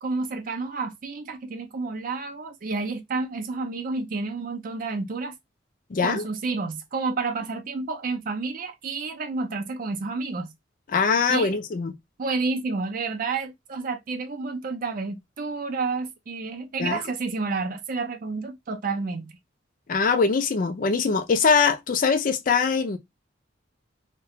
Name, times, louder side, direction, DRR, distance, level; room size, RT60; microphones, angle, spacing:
voice 1, 0.0-5.4 6.0-10.5 11.3-11.5 12.2-19.4, right 4 dB, 45° right, 0.4 m, -30 dB
voice 2, 5.9-6.2 10.9-11.9 16.8-17.0 19.9-23.0, left 5 dB, 45° left, 0.4 m, -22 dB
2.3 x 2.1 x 2.8 m
head